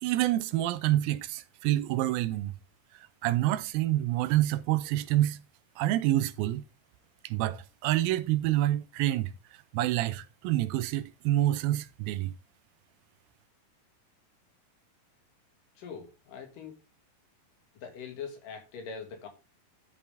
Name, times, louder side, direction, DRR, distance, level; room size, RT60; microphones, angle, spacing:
voice 1, 0.0-2.5 3.2-5.4 5.8-6.6 7.2-9.3 9.7-12.3, right 14 dB, 90° right, 2.5 m, -27 dB
voice 2, 15.8-16.8 17.7-19.3, left 6 dB, 70° left, 3.5 m, -42 dB
12.0 x 5.5 x 3.5 m
omnidirectional pair, 4.1 m